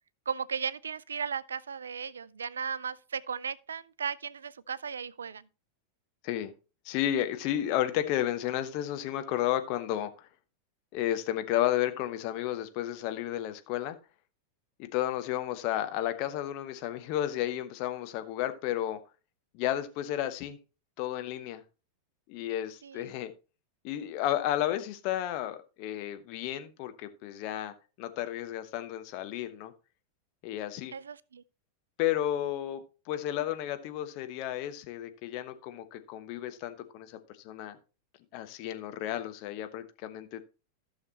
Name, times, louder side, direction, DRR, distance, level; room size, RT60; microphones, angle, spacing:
voice 1, 0.3-5.5 22.8-23.1 30.9-31.4, right 6 dB, 70° right, 0.4 m, -36 dB
voice 2, 6.8-10.3 10.9-14.0 14.9-19.0 19.5-20.6 21.0-21.6 22.3-23.3 23.8-29.7 30.4-30.9 32.0-37.2 37.4-37.8 38.3-40.5, left 12 dB, 45° left, 1.1 m, -32 dB
14.5 x 6.4 x 2.9 m
figure-of-eight pair, 90°, 0 cm